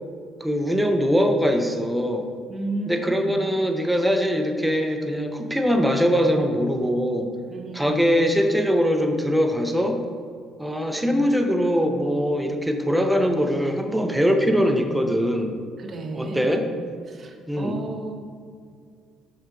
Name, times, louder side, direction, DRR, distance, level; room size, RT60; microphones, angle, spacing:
voice 1, 0.4-2.3 2.9-7.3 7.7-10.0 10.6-15.5 16.1-16.7 17.5-17.8, equal, 5° right, 4 dB, 0.6 m, -22 dB
voice 2, 2.5-3.4 7.5-8.1 15.8-16.6 17.1-18.2, right 2 dB, 45° right, 4 dB, 0.8 m, -33 dB
5.5 x 5.4 x 3.8 m, 2.2 s
cardioid pair, 95°, 0 cm